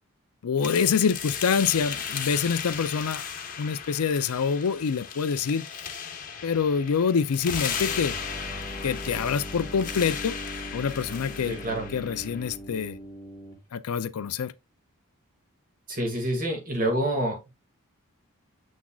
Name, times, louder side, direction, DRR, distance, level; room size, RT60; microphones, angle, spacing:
voice 1, 0.4-3.2 3.6-5.6 6.4-8.1 8.8-10.4 10.7-11.6 11.9-13.0 13.7-14.5, left 6 dB, 85° left, 0.5 m, -26 dB
sound 1, 0.6-12.6, left 7 dB, 40° left, 1.1 m, -36 dB
sound 2, 7.4-13.6, equal, 15° left, 1.3 m, -39 dB
voice 2, 11.5-11.9 15.9-17.5, right 1 dB, 40° right, 2.1 m, -27 dB
7.3 x 6.1 x 2.3 m
head